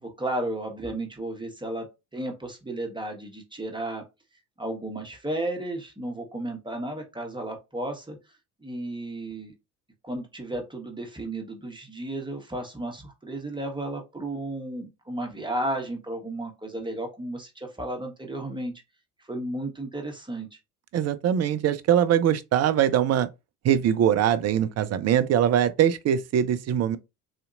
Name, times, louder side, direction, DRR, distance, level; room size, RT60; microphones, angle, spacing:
voice 1, 0.0-1.9 2.1-4.0 4.6-8.2 8.6-9.5 10.0-18.7 19.3-20.5, right 1 dB, 10° right, 1.3 m, -33 dB
voice 2, 20.9-23.3 23.6-27.0, right 10 dB, 35° right, 0.5 m, -22 dB
4.0 x 2.8 x 2.5 m
hypercardioid pair, 60°, 45 cm